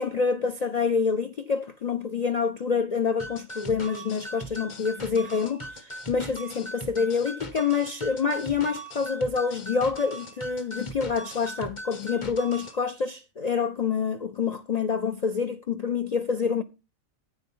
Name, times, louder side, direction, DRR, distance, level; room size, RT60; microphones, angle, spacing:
voice 1, 0.0-16.6, left 5 dB, 65° left, 0.4 m, -27 dB
sound 1, 3.2-12.8, right 1 dB, 25° left, 1.1 m, -40 dB
9.4 x 8.8 x 3.7 m
omnidirectional pair, 1.4 m